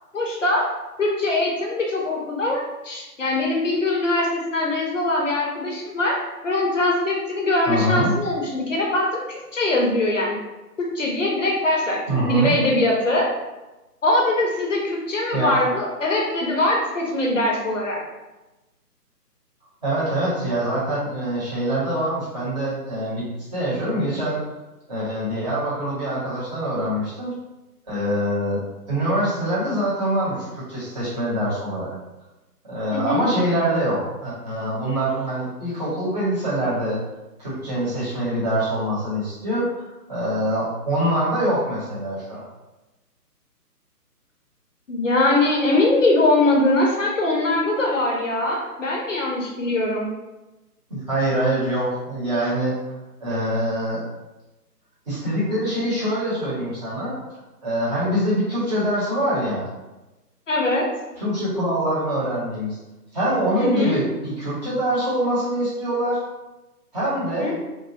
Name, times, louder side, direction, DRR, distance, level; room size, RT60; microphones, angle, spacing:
voice 1, 0.1-0.7 1.0-6.2 6.4-10.4 10.8-12.0 12.3-13.2 14.0-18.0 32.9-33.2 44.9-50.1 60.5-60.8 63.6-64.0 67.4-67.5, left 2 dB, 50° left, -1 dB, 0.6 m, -22 dB
voice 2, 7.7-8.1 12.1-12.5 15.3-15.6 19.8-23.2 23.5-24.4 24.9-27.3 27.9-28.6 28.9-31.9 32.7-37.0 37.4-42.4 50.9-52.7 53.2-54.0 55.1-57.1 57.6-59.6 61.2-62.8 63.1-66.2 66.9-67.5, right 1 dB, 25° right, -9 dB, 0.9 m, -24 dB
2.9 x 2.2 x 2.8 m, 1.1 s
figure-of-eight pair, 145°, 48 cm